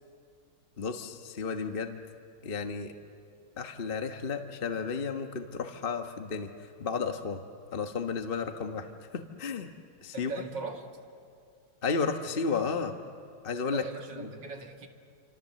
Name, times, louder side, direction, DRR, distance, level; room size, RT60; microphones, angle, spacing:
voice 1, 0.8-2.0 2.4-2.9 3.6-6.5 6.8-7.4 7.7-8.9 9.1-9.7 10.0-10.3 11.8-12.9 13.4-13.8 14.2-14.3, left 5 dB, 30° left, 5 dB, 1.1 m, -32 dB
voice 2, 10.1-10.9 13.7-14.9, right 4 dB, 60° right, 3 dB, 2.8 m, -39 dB
28.5 x 26.0 x 7.5 m, 2.4 s
omnidirectional pair, 2.2 m